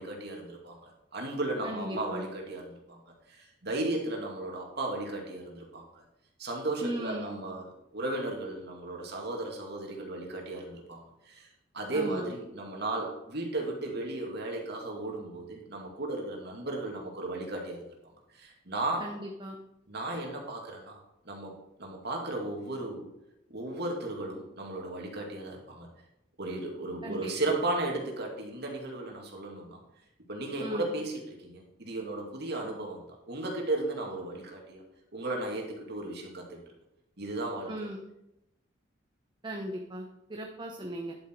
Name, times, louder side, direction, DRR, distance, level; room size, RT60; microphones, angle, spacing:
voice 1, 0.0-3.0 3.3-5.8 6.4-7.7 7.9-11.5 11.7-19.1 19.9-21.0 21.2-23.1 23.5-25.9 26.4-29.8 30.3-34.8 35.1-36.6 37.2-37.9, right 2 dB, 60° right, 0 dB, 2.5 m, -35 dB
voice 2, 1.6-2.3 6.8-7.4 11.9-12.3 19.0-19.6 27.0-27.3 30.6-30.9 37.7-38.0 39.4-41.2, right 1 dB, 25° right, 2 dB, 0.9 m, -37 dB
10.5 x 7.8 x 4.7 m, 0.87 s
head